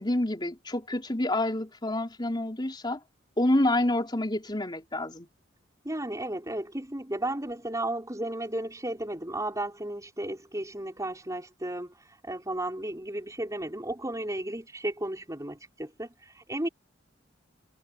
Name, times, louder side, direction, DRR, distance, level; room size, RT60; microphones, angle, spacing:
voice 1, 0.0-3.0 3.4-5.3, left 1 dB, 25° left, 3.8 m, -28 dB
voice 2, 5.8-16.7, right 1 dB, 15° right, 5.8 m, -34 dB
head